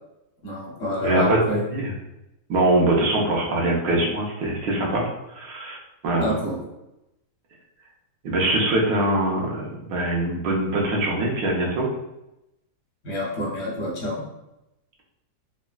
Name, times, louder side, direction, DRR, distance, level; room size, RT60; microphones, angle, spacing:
voice 1, 0.4-1.6 6.2-6.6 13.0-14.2, equal, 55° left, -4 dB, 1.2 m, -28 dB
voice 2, 1.0-1.4 1.7-1.9 2.5-6.4 8.2-11.9, right 1 dB, 90° right, -2 dB, 1.3 m, -23 dB
3.5 x 2.1 x 2.2 m, 0.90 s
omnidirectional pair, 1.8 m